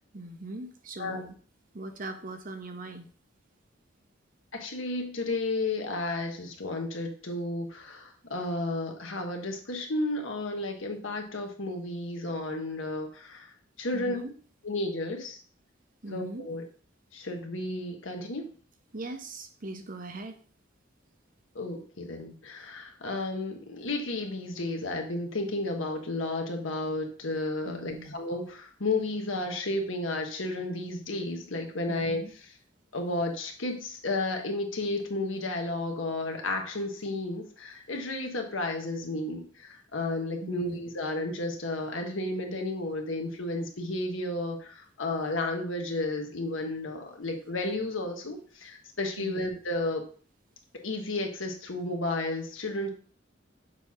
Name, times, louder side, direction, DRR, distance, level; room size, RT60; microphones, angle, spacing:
voice 1, 0.1-1.3 1.7-3.1 13.9-14.3 16.0-16.5 18.9-20.4 27.6-28.1 31.9-32.3 40.4-40.8 49.2-49.4, right 2 dB, 45° right, 7 dB, 0.8 m, -40 dB
voice 2, 4.5-13.5 13.8-14.2 14.6-15.4 16.1-16.6 17.1-18.5 21.5-32.2 32.9-50.0 50.8-52.9, left 2 dB, 80° left, 3 dB, 1.3 m, -32 dB
6.9 x 4.4 x 3.6 m, 0.43 s
head